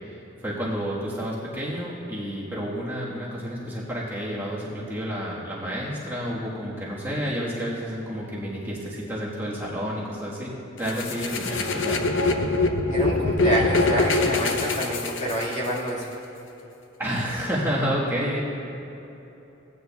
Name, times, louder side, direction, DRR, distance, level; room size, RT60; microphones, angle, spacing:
voice 1, 0.4-10.5 10.8-12.0 17.0-18.4, equal, 10° right, -7 dB, 1.4 m, -30 dB
sound 1, 10.9-15.8, left 2 dB, 75° left, 0.7 m, -24 dB
voice 2, 12.9-16.1, right 1 dB, 40° left, -5 dB, 1.9 m, -27 dB
17.0 x 9.5 x 2.3 m, 3.0 s
head